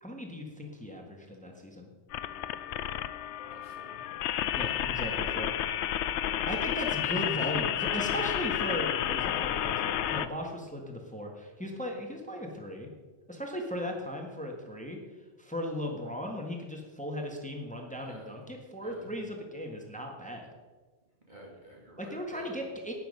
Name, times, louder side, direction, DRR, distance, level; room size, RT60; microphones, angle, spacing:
voice 1, 0.0-1.9 4.6-5.5 6.5-12.9 13.3-15.0 15.4-20.5 22.0-22.9, left 1 dB, 5° left, 2 dB, 1.5 m, -37 dB
sound 1, 2.1-10.3, left 11 dB, 75° left, 0.9 m, -31 dB
voice 2, 3.5-4.0 18.0-18.4 18.8-19.1 21.3-22.6, equal, 40° right, -2 dB, 2.6 m, -50 dB
11.5 x 9.5 x 5.4 m, 1.3 s
omnidirectional pair, 1.2 m